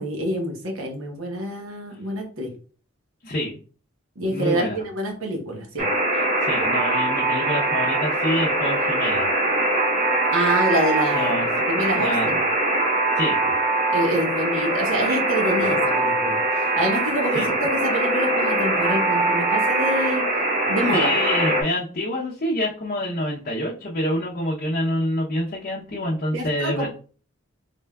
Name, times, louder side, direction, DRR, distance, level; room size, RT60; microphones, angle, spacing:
voice 1, 0.0-2.5 4.2-5.9 10.3-12.4 13.9-20.2 20.7-21.1 26.3-26.9, right 1 dB, 75° right, 2 dB, 1.0 m, -26 dB
voice 2, 3.2-3.6 4.3-4.8 6.1-9.3 11.1-11.5 11.9-12.4 13.2-13.4 15.6-15.7 17.3-17.5 20.8-26.9, left 1 dB, 40° left, -4 dB, 0.6 m, -27 dB
Alarm, 5.8-21.6, right 2 dB, 35° right, 0.9 m, -22 dB
3.5 x 3.4 x 2.2 m, 0.40 s
head